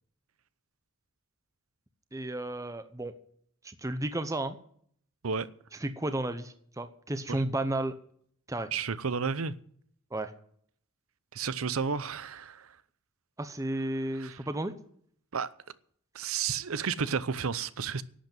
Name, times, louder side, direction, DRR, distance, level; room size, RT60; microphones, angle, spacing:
voice 1, 2.1-3.1 3.6-4.6 5.8-7.9 8.5-8.7 10.1-10.3 13.4-14.7, right 1 dB, 15° right, 0.8 m, -33 dB
voice 2, 8.7-9.5 11.3-12.7 14.2-14.4 15.3-15.5 16.1-18.0, right 6 dB, 75° right, 0.7 m, -32 dB
11.5 x 8.2 x 8.9 m
head